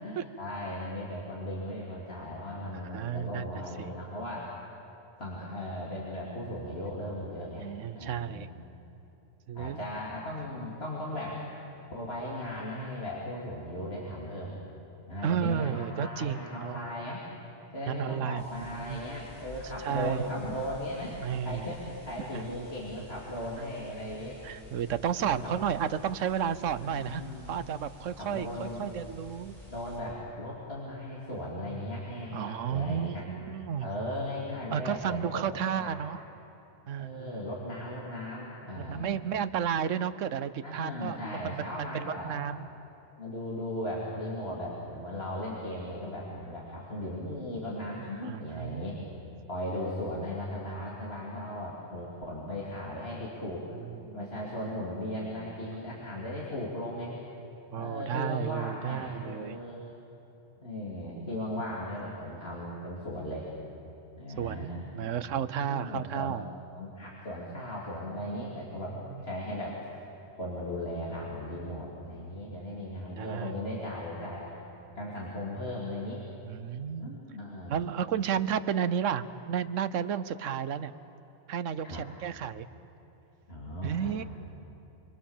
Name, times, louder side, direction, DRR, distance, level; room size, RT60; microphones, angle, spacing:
voice 1, 0.0-4.5 5.2-7.7 7.9-8.5 9.5-11.4 11.9-14.6 15.1-17.3 17.7-21.2 21.4-24.4 25.2-25.5 26.8-27.7 28.2-28.9 29.7-33.2 33.8-35.9 37.0-39.2 40.6-42.4 43.2-49.0 49.5-53.6 54.1-57.1 57.8-59.8 60.6-63.5 64.2-65.2 65.7-66.4 66.7-69.9 70.3-74.5 74.9-76.2 77.0-77.9 81.8-82.0 83.5-84.2, left 1 dB, 50° left, -5 dB, 3.2 m, -37 dB
voice 2, 2.7-3.9 7.6-8.6 9.5-9.8 15.2-16.8 17.9-18.4 18.9-19.0 19.8-20.6 21.2-21.7 22.3-22.4 24.4-27.2 27.5-29.5 32.3-33.9 34.7-36.2 36.9-37.3 38.8-42.7 48.2-48.9 54.0-54.3 57.7-59.6 64.4-66.5 69.1-69.3 73.1-73.6 76.5-77.2 77.7-80.9 81.5-82.7 83.8-84.2, right 8 dB, 80° right, 14 dB, 1.1 m, -32 dB
sound 1, 18.4-30.0, left 2 dB, 35° left, 6.1 m, -51 dB
28.5 x 22.5 x 7.3 m, 3.0 s
omnidirectional pair, 1.3 m